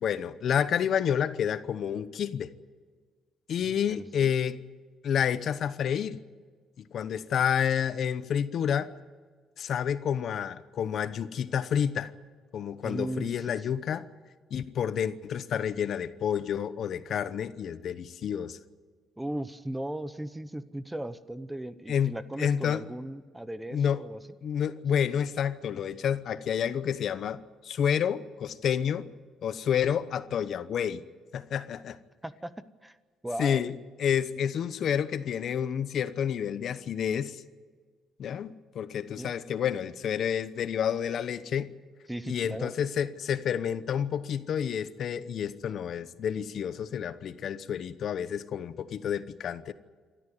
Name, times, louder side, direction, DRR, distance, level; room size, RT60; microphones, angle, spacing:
voice 1, 0.0-2.5 3.5-4.6 5.0-6.2 6.8-8.9 9.6-12.1 12.5-14.1 14.5-18.6 21.9-22.8 23.7-24.0 24.4-29.1 29.4-31.0 31.3-32.0 33.4-33.7 34.0-37.4 38.2-41.7 42.3-49.7, left 8 dB, 60° left, 14 dB, 0.9 m, -29 dB
voice 2, 3.6-4.3 12.8-13.6 19.2-24.2 32.2-32.5 32.8-33.0 33.2-33.8 39.2-39.3 42.1-42.7, right 1 dB, 10° right, 14 dB, 0.9 m, -37 dB
27.5 x 13.5 x 9.5 m, 1.5 s
cardioid pair, 110°, 0 cm